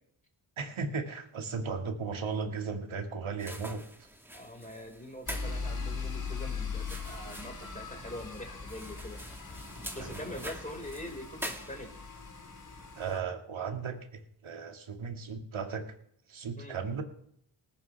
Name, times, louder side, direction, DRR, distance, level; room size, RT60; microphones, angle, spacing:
voice 1, 0.6-3.8 10.0-10.4 13.0-15.9 16.3-17.0, right 5 dB, 70° right, 4 dB, 2.2 m, -36 dB
sound 1, 3.4-12.2, equal, 5° right, 1.9 m, -46 dB
voice 2, 4.3-9.2 9.9-11.9 16.6-16.8, left 1 dB, 15° left, 1 dB, 5.1 m, -43 dB
sound 2, 5.3-13.2, left 4 dB, 40° left, 5.5 m, -40 dB
19.0 x 11.5 x 3.5 m, 0.69 s
cardioid pair, 60°, 50 cm